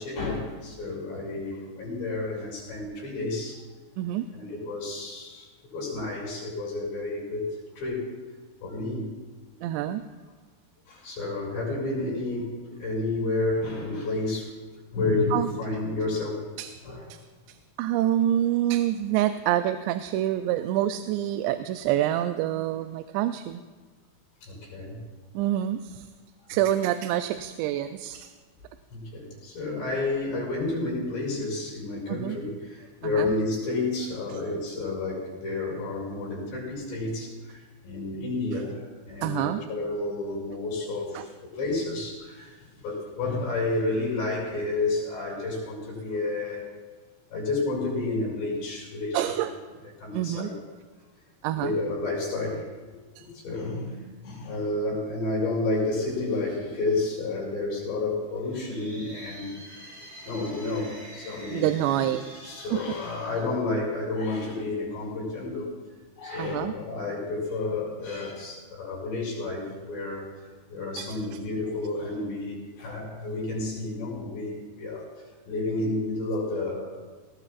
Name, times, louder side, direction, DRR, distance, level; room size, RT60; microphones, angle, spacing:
voice 1, 0.0-3.6 4.3-8.1 8.6-9.1 10.9-14.5 14.9-16.5 16.8-17.1 24.4-25.0 28.9-46.7 47.3-49.5 50.0-50.5 51.5-52.7 53.2-59.6 60.2-62.1 62.4-65.7 66.2-70.3 70.7-75.1 75.5-77.0, left 2 dB, 80° left, -7 dB, 7.8 m, -30 dB
voice 2, 4.0-4.3 9.6-10.0 15.3-15.5 16.6-16.7 17.1-17.2 17.5-23.6 25.3-26.1 26.5-28.3 32.1-32.4 33.0-33.3 39.2-39.6 41.1-41.3 49.1-49.5 50.1-50.5 51.4-51.8 53.2-53.3 61.5-62.2 62.7-62.8 66.4-66.7 71.0-71.4, right 12 dB, 90° right, 9 dB, 2.8 m, -27 dB
sound 1, 58.3-64.3, equal, 20° right, 4.7 m, -47 dB
19.5 x 18.5 x 2.5 m, 1.4 s
omnidirectional pair, 4.9 m